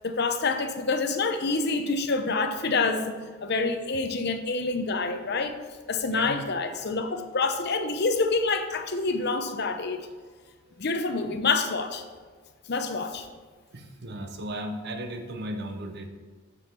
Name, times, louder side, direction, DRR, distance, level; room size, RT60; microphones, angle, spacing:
voice 1, 0.0-3.1 3.4-5.6 5.9-10.1 10.8-12.1 12.7-13.3, left 3 dB, 50° left, 7 dB, 0.7 m, -27 dB
voice 2, 6.1-6.5 9.1-9.3 13.7-16.1, right 1 dB, 50° right, 5 dB, 0.8 m, -36 dB
7.1 x 6.8 x 4.5 m, 1.5 s
head